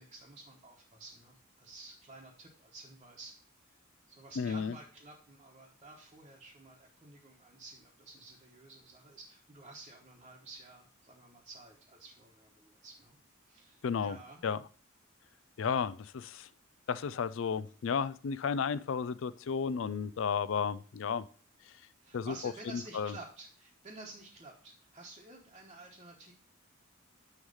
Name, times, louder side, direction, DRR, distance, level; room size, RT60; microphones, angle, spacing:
voice 1, 0.0-3.3 3.6-3.8 4.1-13.2 13.5-14.5 22.0-26.3, right 2 dB, 30° right, -4 dB, 1.1 m, -52 dB
voice 2, 4.4-4.7 13.8-14.2 14.4-14.6 15.6-16.5 16.9-21.2 22.1-22.5 22.9-23.1, left 6 dB, 65° left, 16 dB, 0.4 m, -33 dB
9.6 x 3.2 x 5.4 m, 0.41 s
head